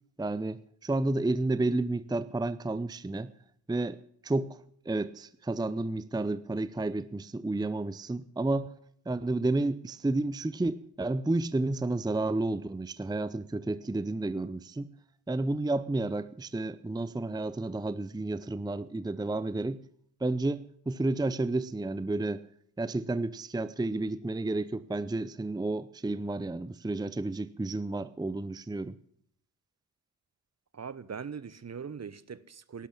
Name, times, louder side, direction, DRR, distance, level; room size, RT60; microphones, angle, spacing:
voice 1, 0.2-3.3 3.7-4.0 4.2-4.6 4.8-8.7 9.1-14.9 15.3-19.8 20.2-22.4 22.8-29.0, right 2 dB, 10° right, 0.7 m, -31 dB
voice 2, 30.7-32.9, right 6 dB, 35° right, 1.0 m, -41 dB
12.0 x 11.5 x 8.7 m
hypercardioid pair, 40°, 45 cm